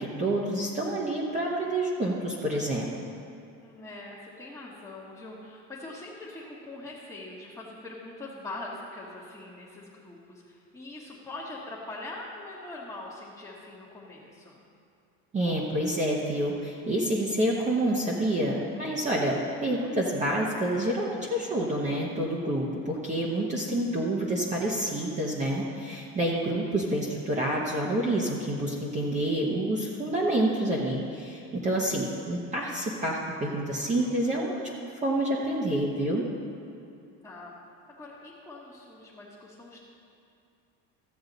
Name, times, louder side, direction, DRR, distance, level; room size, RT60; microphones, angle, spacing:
voice 1, 0.0-2.9 15.3-34.6 34.9-36.2, right 1 dB, 20° right, -3 dB, 0.9 m, -28 dB
voice 2, 3.6-14.6 36.7-36.9 37.2-37.6 38.0-39.8, left 2 dB, 10° left, -8 dB, 1.2 m, -42 dB
14.5 x 7.8 x 3.9 m, 2.5 s
cardioid pair, 150°, 34 cm